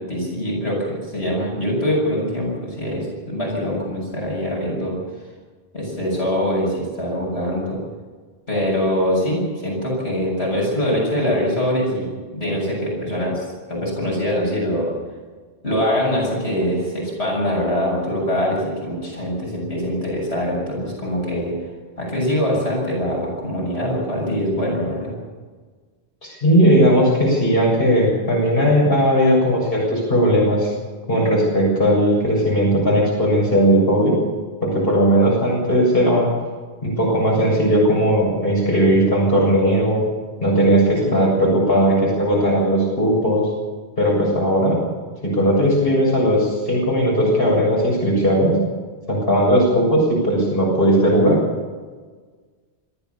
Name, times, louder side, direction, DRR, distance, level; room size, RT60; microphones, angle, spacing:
voice 1, 0.1-5.0 5.7-7.8 8.5-14.9 15.6-21.5 22.0-25.2 41.0-41.3, equal, 80° left, -3 dB, 7.8 m, -23 dB
voice 2, 26.2-30.7 31.1-34.2 34.6-36.3 36.8-40.0 40.4-43.5 44.0-44.8 45.2-48.6 49.1-51.4, equal, 60° left, -3 dB, 7.5 m, -17 dB
26.5 x 14.0 x 7.2 m, 1.4 s
omnidirectional pair, 1.1 m